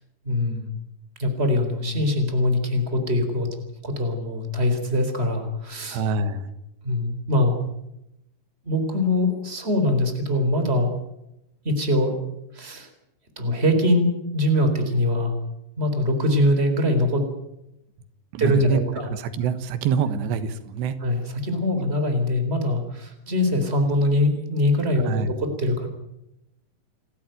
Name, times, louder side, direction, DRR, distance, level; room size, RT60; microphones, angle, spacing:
voice 1, 0.2-0.6 1.2-3.5 3.8-6.0 6.8-7.6 8.6-10.9 11.6-12.2 12.5-12.9 13.4-14.1 14.3-15.3 15.8-17.3 18.4-19.1 21.0-25.9, left 1 dB, 15° right, 7 dB, 3.9 m, -23 dB
voice 2, 5.9-6.5 18.3-18.8 19.1-21.0 25.1-25.3, right 5 dB, 90° right, 11 dB, 3.6 m, -26 dB
28.5 x 13.0 x 9.3 m, 0.86 s
omnidirectional pair, 4.8 m